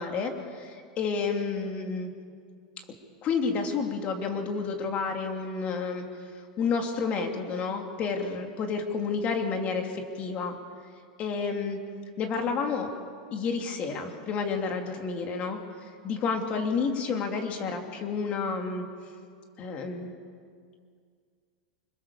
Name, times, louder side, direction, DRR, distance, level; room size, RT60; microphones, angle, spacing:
voice 1, 0.0-2.1 3.2-6.1 6.6-10.6 11.2-11.8 12.2-12.9 13.3-15.6 16.0-18.9 19.6-20.1, left 5 dB, 35° left, 4 dB, 2.9 m, -30 dB
25.0 x 22.0 x 7.2 m, 2.1 s
supercardioid pair, 140°, 4 cm